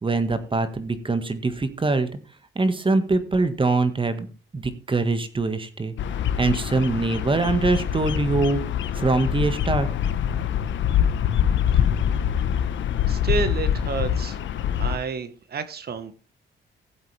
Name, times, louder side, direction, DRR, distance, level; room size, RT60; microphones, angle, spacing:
voice 1, 0.0-2.1 2.5-5.9 6.4-8.6 8.9-9.9, right 3 dB, 25° right, 1.7 m, -23 dB
Bird vocalization bird call bird song, 6.0-15.0, left 9 dB, 70° left, 1.2 m, -24 dB
voice 2, 13.1-14.4 14.8-16.1, right 5 dB, 50° right, 1.5 m, -29 dB
15.5 x 8.0 x 3.4 m
cardioid pair, 90°, 20 cm